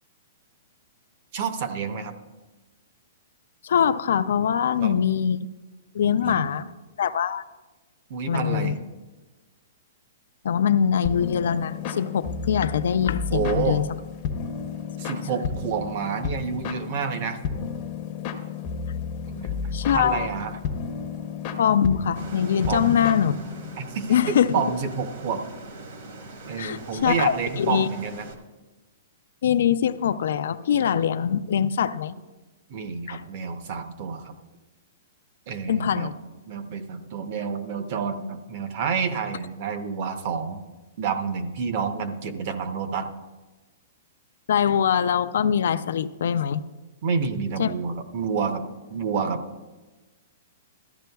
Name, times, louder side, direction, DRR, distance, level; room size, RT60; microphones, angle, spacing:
voice 1, 1.3-2.1 4.8-4.9 6.0-6.5 8.1-8.8 13.3-13.8 15.0-17.4 19.3-19.6 19.9-20.5 22.7-23.0 23.8-25.4 26.5-28.3 32.7-34.3 35.5-36.1 36.5-40.6 41.0-43.1 47.0-48.6 48.9-49.4, right 6 dB, 35° right, 8 dB, 0.6 m, -29 dB
voice 2, 3.6-5.5 5.9-6.7 7.0-7.4 8.3-8.7 10.4-13.9 19.7-20.3 21.6-23.4 24.1-24.6 26.6-27.9 29.4-32.2 33.1-33.2 35.7-36.1 44.5-46.6 47.6-47.7, left 8 dB, 60° left, 13 dB, 0.3 m, -23 dB
sound 1, 11.0-23.8, left 6 dB, 25° left, 0.6 m, -32 dB
sound 2, 22.1-28.4, right 2 dB, 50° right, 1.1 m, -42 dB
14.0 x 11.0 x 2.3 m, 1.2 s
hypercardioid pair, 175°, 0 cm